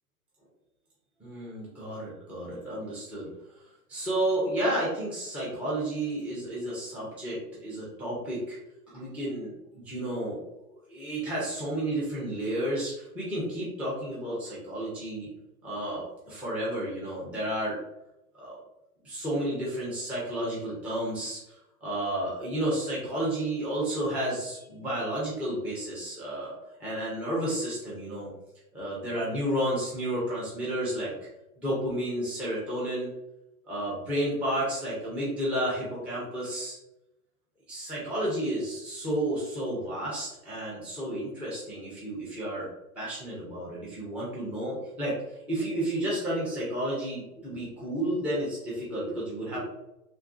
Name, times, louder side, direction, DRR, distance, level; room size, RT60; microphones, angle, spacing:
voice 1, 1.2-3.3 3.9-8.6 8.9-10.4 10.9-15.3 15.6-17.8 18.4-18.6 19.0-28.3 28.7-31.3 31.6-33.1 33.7-36.8 37.7-42.7 43.0-49.6, right 1 dB, 5° right, -8 dB, 0.5 m, -31 dB
3.1 x 2.3 x 2.4 m, 0.91 s
hypercardioid pair, 110°, 46 cm